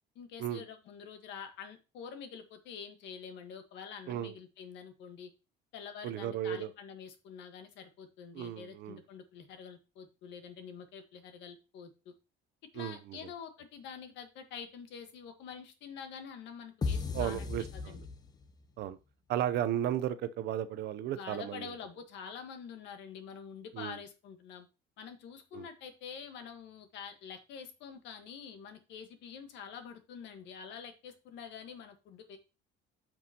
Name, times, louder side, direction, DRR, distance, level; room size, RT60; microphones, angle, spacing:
voice 1, 0.1-5.3 5.7-12.1 12.7-17.5 17.7-18.0 21.1-24.7 25.0-32.4, left 7 dB, 65° left, 1.4 m, -47 dB
voice 2, 6.0-6.7 8.3-9.0 12.8-13.2 17.1-18.0 18.8-19.0 19.3-21.7 23.7-24.0 25.5-25.6, right 11 dB, 55° right, 0.6 m, -34 dB
sound 1, 16.8-18.6, left 4 dB, 20° left, 0.6 m, -35 dB
9.3 x 6.1 x 2.9 m
cardioid pair, 155°, 20 cm